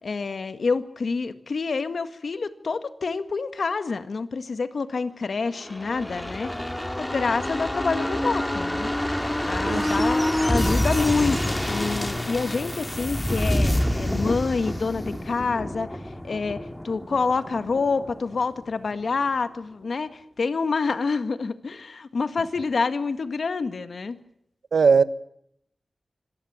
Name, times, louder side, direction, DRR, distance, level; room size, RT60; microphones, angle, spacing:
voice 1, 0.0-6.5 7.0-8.9 9.5-24.2, left 4 dB, 70° left, 1.8 m, -27 dB
sound 1, 5.5-19.0 19.3-19.4, left 1 dB, 15° left, 3.0 m, -27 dB
voice 2, 9.6-10.0 24.7-25.0, right 5 dB, 85° right, 1.2 m, -19 dB
25.5 x 19.0 x 8.7 m
cardioid pair, 60°, 0 cm